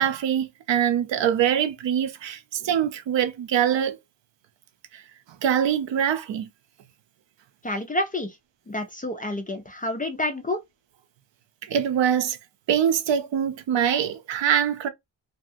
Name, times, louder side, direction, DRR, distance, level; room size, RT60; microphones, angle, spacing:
voice 1, 0.0-4.0 4.9-5.0 5.4-6.5 11.7-12.4 12.7-14.9, right 9 dB, 75° right, 0.6 m, -23 dB
voice 2, 7.6-8.4 8.7-10.6, left 1 dB, 20° left, 0.3 m, -29 dB
2.7 x 2.3 x 2.6 m
wide cardioid pair, 140°, 44 cm